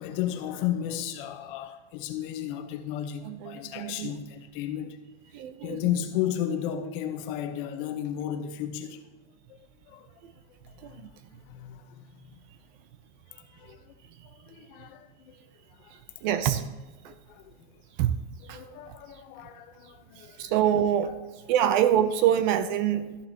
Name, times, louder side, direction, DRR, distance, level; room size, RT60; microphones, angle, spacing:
voice 1, 0.0-5.0 5.6-9.0 9.9-10.1 10.9-11.0 11.3-12.0 13.3-13.8 14.5-15.3 17.3-17.5 18.4-20.6 21.1-21.2, left 10 dB, 50° left, 1.1 m, -33 dB
voice 2, 3.2-4.2 5.3-5.8 10.8-11.1 16.2-16.6 17.0-17.1 18.0-18.2 18.5-18.6 20.4-21.2 21.5-23.2, right 10 dB, 45° right, 0.6 m, -25 dB
14.0 x 11.0 x 2.9 m
supercardioid pair, 165°, 34 cm